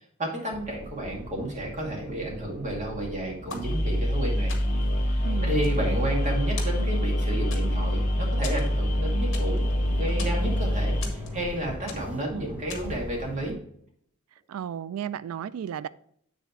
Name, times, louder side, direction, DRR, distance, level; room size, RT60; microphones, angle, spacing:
voice 1, 0.2-4.5 5.0-9.7 10.0-13.6, right 1 dB, 35° right, 2.2 m, -32 dB
sound 1, 0.5-13.5, equal, 5° right, 0.8 m, -41 dB
sound 2, 3.5-4.2 4.5-5.0 5.4-6.3 6.6-7.1 7.5-8.0 8.4-9.7 10.0-10.5 11.0-11.5 11.9-12.2 12.7-13.0, left 5 dB, 65° left, 1.7 m, -41 dB
sound 3, 3.6-11.0, equal, 40° left, 1.2 m, -25 dB
voice 2, 5.2-5.7 14.5-15.9, right 9 dB, 75° right, 0.3 m, -34 dB
8.2 x 4.0 x 4.6 m
head